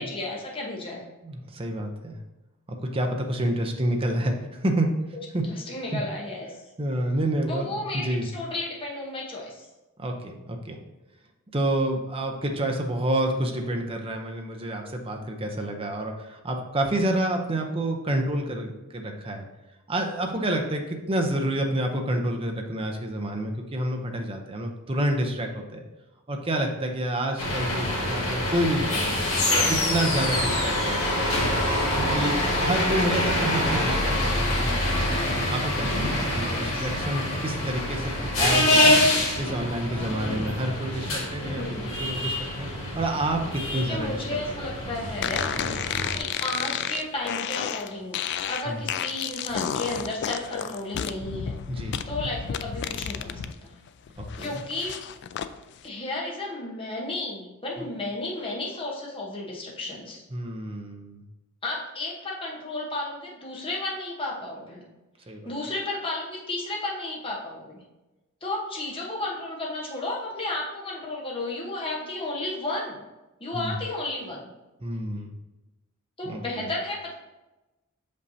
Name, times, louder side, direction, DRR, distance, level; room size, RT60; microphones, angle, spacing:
voice 1, 0.0-1.0 5.4-6.6 7.5-9.7 36.4-36.9 41.4-42.0 43.7-45.5 46.2-48.2 48.5-53.8 54.4-55.0 55.8-60.2 61.6-64.8 65.4-67.8 68.4-73.0 73.4-74.5 76.2-77.1, left 2 dB, 25° left, -3 dB, 1.1 m, -33 dB
voice 2, 1.2-2.2 2.7-4.9 5.3-5.4 5.9-6.0 6.8-8.3 10.0-10.8 11.5-19.5 19.9-25.8 26.3-29.2 29.7-31.2 31.9-39.0 39.4-41.7 41.9-44.2 45.6-45.8 48.7-48.8 51.7-52.0 54.2-54.6 60.3-61.2 65.3-65.5 73.5-73.8 74.8-75.3 76.2-76.7, right 1 dB, 25° right, 3 dB, 0.7 m, -29 dB
sound 1, 27.4-46.2, left 1 dB, 70° left, 1.8 m, -25 dB
sound 2, 45.2-53.5 53.9-55.5, left 8 dB, 55° left, 0.3 m, -31 dB
6.4 x 5.3 x 2.8 m, 1.1 s
head